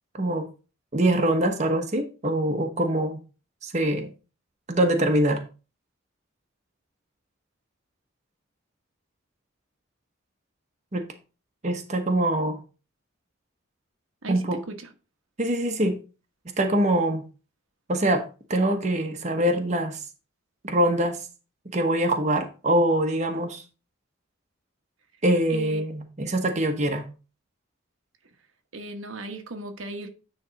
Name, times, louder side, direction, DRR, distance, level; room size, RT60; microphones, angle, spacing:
voice 1, 0.1-0.5 0.9-3.2 3.6-4.1 4.7-5.4 10.9-11.0 11.6-12.6 14.3-14.6 15.4-16.0 16.6-17.3 17.9-18.2 18.5-20.0 20.6-21.2 21.6-23.6 25.2-27.1, right 1 dB, 35° right, 1.1 m, -24 dB
voice 2, 14.2-14.9 25.5-25.8 28.7-30.1, right 2 dB, 85° right, 1.2 m, -37 dB
9.6 x 3.5 x 5.0 m
head